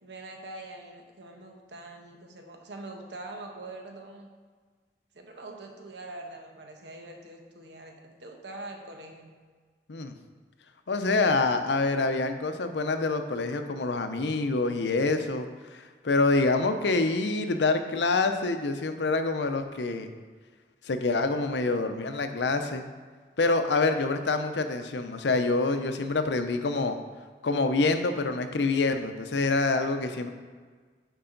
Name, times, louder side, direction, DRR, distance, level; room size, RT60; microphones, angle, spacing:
voice 1, 0.0-4.3 5.1-9.3, right 2 dB, 85° right, 2 dB, 1.1 m, -43 dB
voice 2, 10.9-20.1 20.8-22.9 23.4-27.0 27.4-30.3, left 3 dB, 80° left, 8 dB, 0.6 m, -26 dB
10.0 x 4.7 x 3.9 m, 1.5 s
head